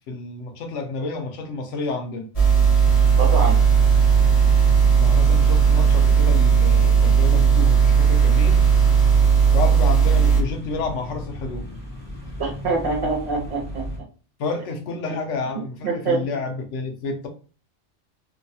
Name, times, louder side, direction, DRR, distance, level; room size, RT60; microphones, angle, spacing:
voice 1, 0.1-2.3 5.0-8.7 9.5-11.7 14.4-17.3, left 3 dB, 75° left, 4 dB, 0.9 m, -30 dB
sound 1, 2.3-10.4, right 6 dB, 35° left, 0.9 m, -16 dB
sound 2, 2.8-14.0, left 1 dB, 15° left, 0.3 m, -34 dB
voice 2, 3.2-3.6 12.4-13.9 15.5-16.2, right 3 dB, 60° right, 0 dB, 1.0 m, -25 dB
2.7 x 2.2 x 2.7 m, 0.37 s
omnidirectional pair, 1.3 m